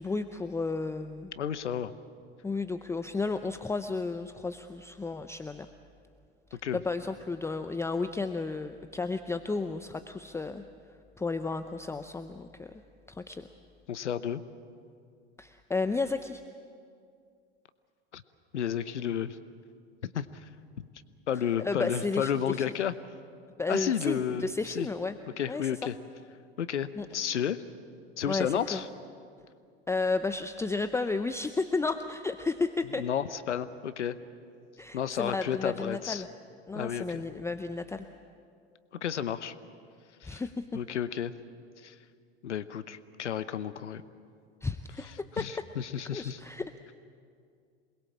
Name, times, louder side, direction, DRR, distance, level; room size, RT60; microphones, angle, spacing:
voice 1, 0.0-1.3 2.4-5.7 6.7-10.6 11.2-12.7 13.1-13.5 15.4-16.4 21.6-22.6 23.6-25.2 25.5-25.7 27.0-27.1 28.2-28.8 29.9-33.0 34.8-36.3 36.7-38.1 40.2-40.8 44.6-45.5 46.1-46.7, left 3 dB, 10° left, 9 dB, 0.7 m, -32 dB
voice 2, 1.4-1.9 6.6-6.8 13.9-14.4 18.1-18.2 18.5-19.4 20.1-20.3 21.3-22.9 23.7-24.9 25.4-25.9 26.6-27.6 28.2-28.9 33.0-34.2 34.9-36.2 36.7-37.2 39.0-39.5 40.2-40.4 40.7-41.3 41.8-42.0 42.4-44.0 45.0-46.4, left 9 dB, 80° left, 14 dB, 1.0 m, -32 dB
27.5 x 21.0 x 7.3 m, 2.3 s
figure-of-eight pair, 85°, 35 cm